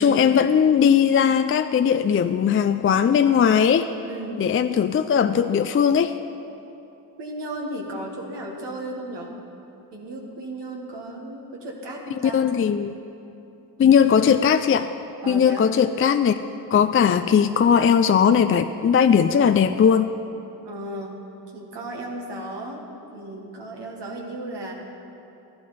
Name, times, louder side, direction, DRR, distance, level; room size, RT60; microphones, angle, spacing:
voice 1, 0.0-3.9 4.4-6.1 12.2-12.9 13.8-14.9 15.3-16.3 16.7-20.1, left 7 dB, 35° left, 10 dB, 0.4 m, -18 dB
voice 2, 4.1-4.5 7.2-9.4 9.9-12.5 15.2-15.7 20.6-21.2 21.5-22.8 23.1-24.7, right 1 dB, 80° right, 0 dB, 1.7 m, -35 dB
13.5 x 11.0 x 4.1 m, 2.8 s
cardioid pair, 55°, 41 cm